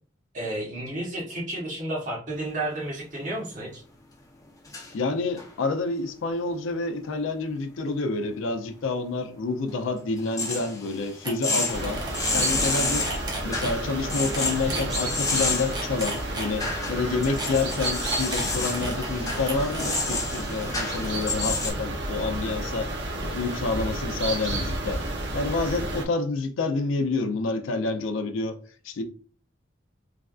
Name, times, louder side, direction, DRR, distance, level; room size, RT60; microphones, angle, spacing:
voice 1, 0.3-3.8, right 1 dB, 40° right, 1.1 m, -32 dB
sound 1, 2.7-2.8 4.7-4.9 5.4-5.5 10.2-21.7, left 3 dB, 20° left, 0.6 m, -30 dB
voice 2, 4.9-12.0 12.3-13.1 13.4-22.9 23.3-25.0 25.3-28.6 28.8-29.0, left 3 dB, 90° left, 0.4 m, -28 dB
sound 2, 10.9-11.0 11.2-11.3 11.6-12.3 12.6-13.7 14.3-14.9 15.5-16.8 17.3-20.0 20.6-21.5, right 2 dB, 20° right, 0.6 m, -35 dB
sound 3, 11.7-26.0, right 2 dB, 60° right, 0.6 m, -31 dB
3.2 x 2.4 x 2.3 m
head